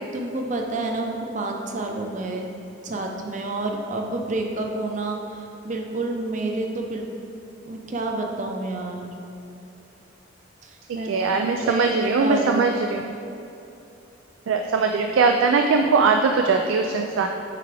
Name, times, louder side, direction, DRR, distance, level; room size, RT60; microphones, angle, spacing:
voice 1, 0.1-2.5 2.8-7.1 7.6-9.1 10.6-12.7, right 2 dB, 40° right, 2 dB, 0.6 m, -29 dB
voice 2, 10.9-13.0 14.5-17.3, right 4 dB, 90° right, 4 dB, 0.4 m, -21 dB
8.4 x 4.6 x 3.4 m, 2.8 s
head